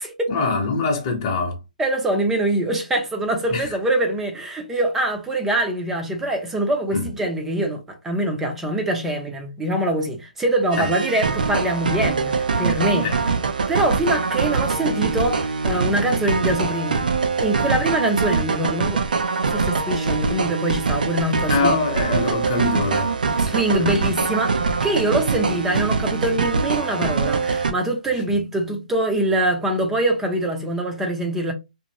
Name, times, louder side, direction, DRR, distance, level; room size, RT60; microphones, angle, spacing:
voice 1, 0.3-1.6 3.5-3.7 6.9-7.1 10.8-10.9 13.0-13.2 21.5-23.2 23.8-24.0, left 3 dB, 30° left, 0.8 m, -23 dB
voice 2, 1.8-13.1 13.7-17.0 17.4-19.0 19.4-21.8 23.4-31.5, right 1 dB, 5° right, 0.5 m, -24 dB
sound 1, 10.7-27.7, right 4 dB, 80° right, 0.6 m, -23 dB
2.6 x 2.5 x 2.9 m
hypercardioid pair, 160°, 5 cm